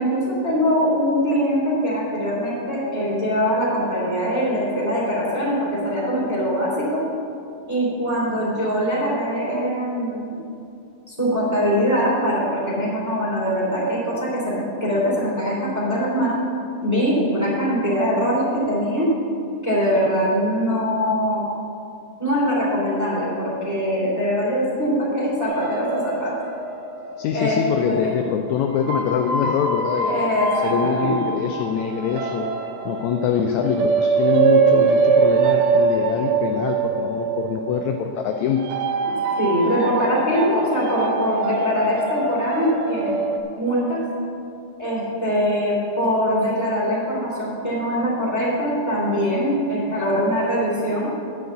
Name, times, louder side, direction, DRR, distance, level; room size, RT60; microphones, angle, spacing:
voice 1, 0.0-7.0 7.7-10.3 11.1-16.4 16.8-19.1 19.6-21.5 22.2-26.3 27.3-27.6 27.9-28.0 30.0-31.1 39.1-43.2 43.6-44.0 44.8-51.1, equal, 5° right, -6 dB, 2.5 m, -22 dB
sound 1, 25.4-28.0 28.7-43.4, right 5 dB, 80° right, 2.3 m, -23 dB
voice 2, 27.2-30.3 30.6-32.5 32.8-38.6, left 7 dB, 80° left, 4 dB, 1.7 m, -24 dB
11.5 x 4.9 x 8.0 m, 2.5 s
omnidirectional pair, 3.7 m